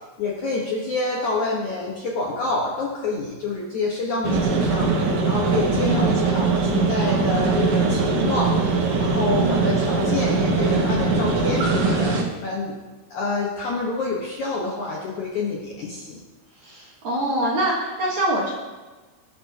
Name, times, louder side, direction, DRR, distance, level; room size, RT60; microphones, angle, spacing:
voice 1, 0.2-4.9 5.3-8.5 9.0-12.8 13.1-16.2, left 3 dB, 65° left, -3 dB, 1.9 m, -27 dB
sound 1, 4.2-12.2, right 4 dB, 85° right, 3.9 m, -21 dB
voice 2, 5.8-6.3 9.3-9.8 16.5-18.5, right 1 dB, 55° right, -4 dB, 2.2 m, -25 dB
19.5 x 10.0 x 2.9 m, 1.3 s
omnidirectional pair, 5.2 m